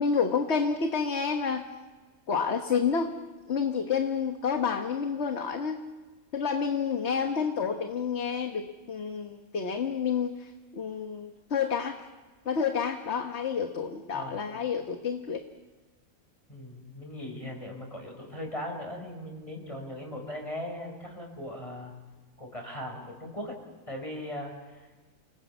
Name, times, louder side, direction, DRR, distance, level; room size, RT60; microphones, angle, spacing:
voice 1, 0.0-1.6 2.3-3.1 3.5-5.8 6.3-12.0 12.4-15.4, left 6 dB, 50° left, 5 dB, 1.5 m, -29 dB
voice 2, 14.1-14.4 16.5-21.9 22.4-23.6 23.9-24.8, left 1 dB, 20° left, 1 dB, 5.4 m, -39 dB
28.5 x 20.0 x 8.4 m, 1.3 s
omnidirectional pair, 1.5 m